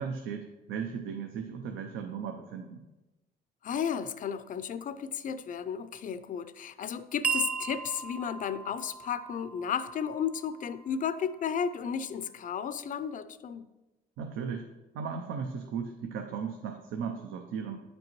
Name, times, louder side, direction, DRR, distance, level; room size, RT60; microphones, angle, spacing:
voice 1, 0.0-2.8 14.2-14.7 14.9-17.8, right 6 dB, 90° right, 5 dB, 0.6 m, -36 dB
voice 2, 3.6-13.7, left 7 dB, 45° left, 12 dB, 0.4 m, -33 dB
sound 1, 7.2-11.9, right 6 dB, 5° right, 0.6 m, -37 dB
9.1 x 5.2 x 3.0 m, 1.0 s
cardioid pair, 90°, 20 cm